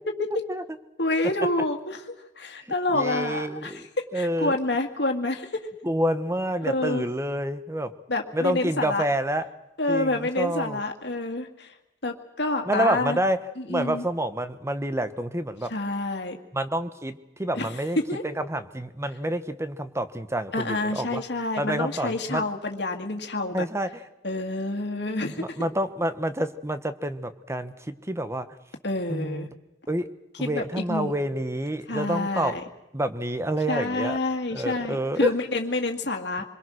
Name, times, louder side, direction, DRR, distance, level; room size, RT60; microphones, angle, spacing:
voice 1, 1.0-2.1 2.4-3.8 4.1-5.5 6.6-7.1 8.1-9.0 9.8-11.7 12.0-13.2 13.6-14.1 15.7-16.4 17.5-17.7 18.1-18.2 20.5-23.7 24.2-25.6 28.8-29.5 30.4-31.1 31.9-32.6 33.7-36.4, left 2 dB, 70° left, 4 dB, 2.1 m, -28 dB
voice 2, 2.9-3.9 4.1-4.5 5.8-7.9 8.3-9.5 9.9-10.8 12.7-13.4 13.7-15.7 16.5-18.0 18.2-21.2 21.6-22.4 23.5-23.9 25.4-27.7 28.1-28.5 29.1-29.5 29.9-30.1 30.4-32.5 32.9-34.2 34.5-35.3, right 1 dB, 15° right, 11 dB, 1.1 m, -28 dB
26.0 x 22.0 x 6.4 m, 0.92 s
head